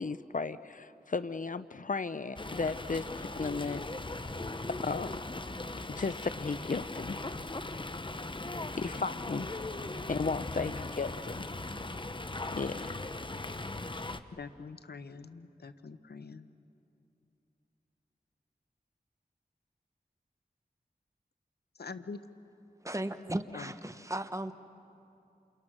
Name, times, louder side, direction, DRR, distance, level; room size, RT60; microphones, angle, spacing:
voice 1, 0.0-3.8 4.8-5.2 5.9-7.3 7.9-8.1 8.7-9.6 10.1-11.5 12.0-12.2 12.5-13.3, left 4 dB, 55° left, 13 dB, 0.6 m, -35 dB
Fowl, 2.4-14.2, left 2 dB, 30° left, 0.9 m, -39 dB
voice 2, 10.5-10.9 14.3-16.5 21.7-22.2 23.5-23.7, left 4 dB, 85° left, 11 dB, 0.8 m, -44 dB
voice 3, 22.8-24.5, right 1 dB, 20° right, 10 dB, 1.1 m, -36 dB
29.0 x 28.0 x 6.1 m, 2.8 s
wide cardioid pair, 55°, 16 cm